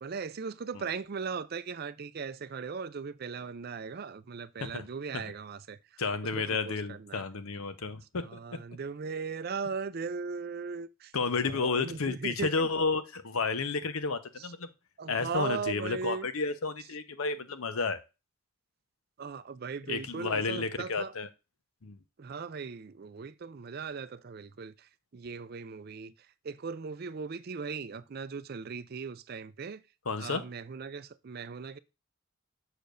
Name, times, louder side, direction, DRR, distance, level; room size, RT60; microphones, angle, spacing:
voice 1, 0.0-6.0 6.4-7.2 8.2-11.1 11.4-12.7 14.4-14.5 15.0-16.3 19.2-21.1 22.2-26.1 26.4-29.8 30.2-31.8, right 5 dB, 45° right, 0.4 m, -38 dB
voice 2, 6.0-8.4 11.1-14.7 15.1-18.0 19.9-21.3 21.8-22.0 30.1-30.4, left 4 dB, 80° left, 0.8 m, -31 dB
6.7 x 6.6 x 2.5 m
head